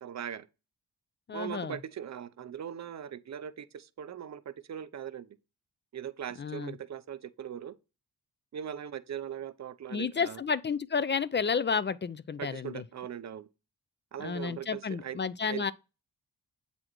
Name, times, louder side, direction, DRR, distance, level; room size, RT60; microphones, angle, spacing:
voice 1, 0.0-0.5 1.3-5.3 5.9-7.7 8.5-10.4 12.4-13.5 14.1-15.2 15.5-15.6, right 9 dB, 40° right, 0.5 m, -40 dB
voice 2, 1.3-1.8 6.4-6.7 9.9-12.8 14.2-15.7, left 5 dB, 30° left, 0.3 m, -31 dB
7.6 x 4.1 x 3.0 m
cardioid pair, 55°, 43 cm